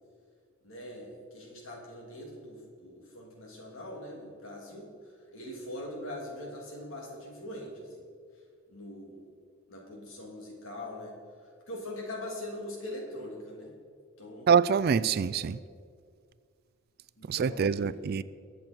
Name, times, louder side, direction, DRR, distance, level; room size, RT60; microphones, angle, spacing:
voice 1, 0.6-4.9 5.3-8.0 8.7-9.2 9.7-11.1 11.4-13.7 14.2-14.5 17.2-18.1, left 1 dB, 70° left, 3.0 m, -42 dB
voice 2, 14.5-15.6 17.3-18.2, right 6 dB, 50° right, 0.3 m, -25 dB
21.5 x 7.9 x 4.5 m
head